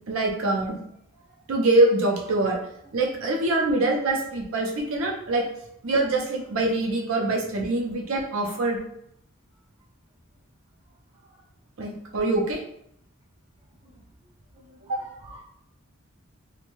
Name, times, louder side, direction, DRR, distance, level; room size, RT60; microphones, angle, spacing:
voice 1, 0.1-0.8 1.5-2.6 2.9-5.4 5.8-8.8 11.8-12.6 14.9-15.0, right 2 dB, 80° right, 0 dB, 0.6 m, -24 dB
voice 2, 14.5-15.4, right 1 dB, 30° right, -5 dB, 0.4 m, -49 dB
2.6 x 2.2 x 2.9 m, 0.75 s
head